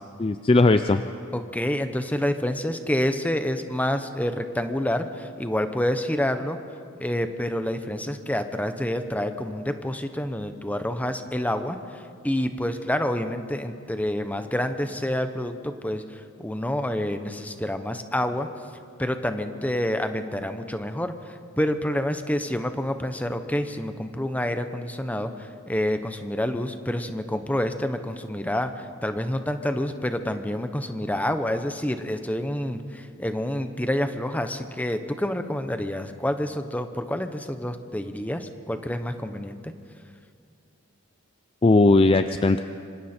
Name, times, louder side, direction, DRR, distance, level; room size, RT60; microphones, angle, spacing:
voice 1, 0.2-1.0 41.6-42.6, left 2 dB, 25° left, 9 dB, 0.4 m, -18 dB
voice 2, 1.3-6.6 7.0-18.5 19.0-39.7, left 1 dB, 5° left, 8 dB, 0.9 m, -28 dB
25.5 x 25.0 x 4.4 m, 2.4 s
head